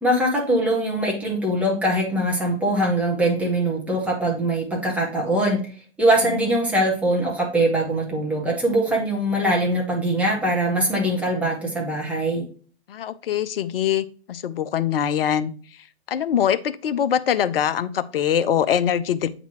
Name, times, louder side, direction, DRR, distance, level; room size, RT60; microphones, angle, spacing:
voice 1, 0.0-5.6 6.0-12.4, right 1 dB, 5° right, -3 dB, 1.8 m, -22 dB
voice 2, 12.9-15.5 16.1-19.3, left 9 dB, 55° left, 14 dB, 0.6 m, -23 dB
8.1 x 4.0 x 3.0 m, 0.41 s
figure-of-eight pair, 110°, 34 cm